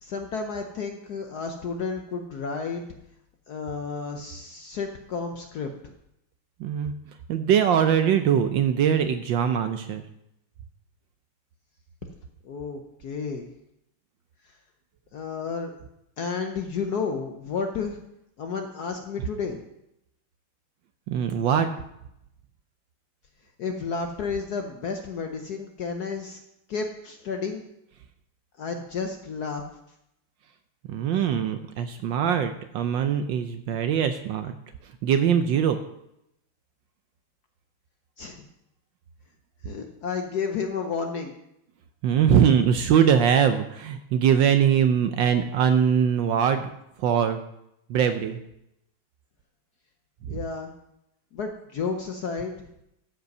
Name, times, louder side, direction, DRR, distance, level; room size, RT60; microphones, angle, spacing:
voice 1, 0.0-2.9 3.5-5.9 12.0-12.1 12.4-13.5 15.1-15.7 16.2-18.0 18.4-19.6 23.6-26.4 26.7-27.6 28.6-29.6 38.2-38.4 39.6-41.4 50.3-50.7 51.3-52.7, left 5 dB, 65° left, 4 dB, 1.0 m, -31 dB
voice 2, 6.6-7.0 7.3-10.0 21.1-21.7 30.9-34.5 35.0-35.8 42.0-46.6 47.0-47.4 47.9-48.4 50.3-50.4, right 8 dB, 75° right, 9 dB, 1.2 m, -22 dB
13.0 x 5.3 x 5.3 m, 0.82 s
omnidirectional pair, 2.4 m